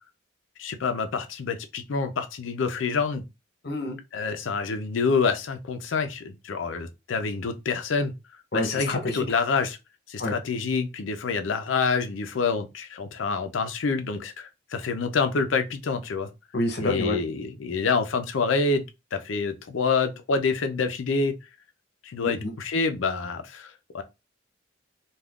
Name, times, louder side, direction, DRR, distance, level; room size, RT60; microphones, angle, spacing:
voice 1, 0.6-3.2 4.1-8.1 8.5-9.8 10.1-16.3 16.8-18.8 19.1-21.3 22.0-24.0, left 4 dB, 85° left, 0.5 m, -27 dB
voice 2, 3.6-4.0 8.5-9.2 10.2-10.3 16.5-17.2 22.2-22.5, left 2 dB, 55° left, 0.8 m, -28 dB
3.5 x 2.3 x 2.3 m
head